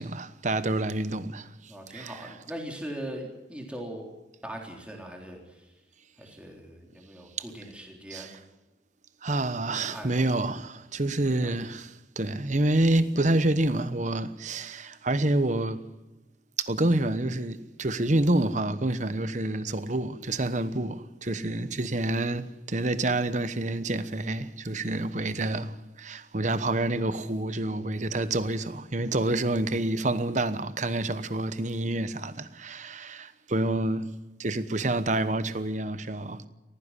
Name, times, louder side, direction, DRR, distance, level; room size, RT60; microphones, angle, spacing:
voice 1, 0.0-1.5 1.9-2.2 8.1-8.4 9.2-15.9 16.6-34.1 34.4-36.5, right 2 dB, 40° right, 1.0 m, -28 dB
voice 2, 1.7-4.1 4.4-5.6 6.2-8.3 9.7-10.2 11.3-11.6 13.4-13.5, right 1 dB, 5° right, 3.6 m, -40 dB
18.5 x 15.5 x 9.8 m
head